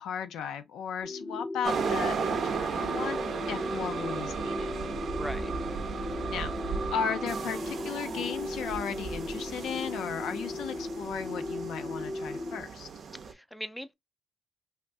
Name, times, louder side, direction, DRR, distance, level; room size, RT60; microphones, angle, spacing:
voice 1, 0.0-4.7 6.3-12.9, left 7 dB, 90° left, 0.5 m, -36 dB
sound 1, 1.0-12.6, left 2 dB, 40° left, 0.7 m, -37 dB
sound 2, 1.6-13.3, right 5 dB, 65° right, 0.5 m, -35 dB
voice 2, 5.2-5.5 13.3-13.9, equal, ahead, 0.4 m, -39 dB
2.8 x 2.6 x 3.3 m
cardioid pair, 80°, 0 cm